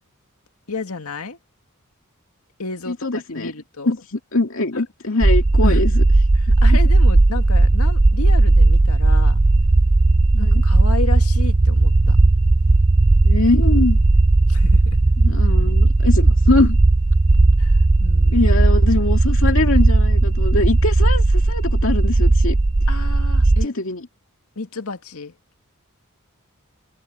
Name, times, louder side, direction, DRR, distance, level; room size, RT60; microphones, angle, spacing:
voice 1, 0.7-1.4 2.6-3.9 4.7-4.8 5.6-5.8 6.3-9.4 10.4-12.2 14.5-14.8 17.6-18.5 22.9-23.7 24.6-25.3, left 3 dB, 90° left, 2.1 m, -31 dB
voice 2, 2.9-3.5 3.9-6.0 6.7-6.8 10.3-10.6 13.2-14.0 15.2-16.8 18.3-22.6 23.6-24.1, left 2 dB, 65° left, 2.5 m, -22 dB
sound 1, 5.2-23.6, right 2 dB, 25° right, 0.4 m, -15 dB
open air
head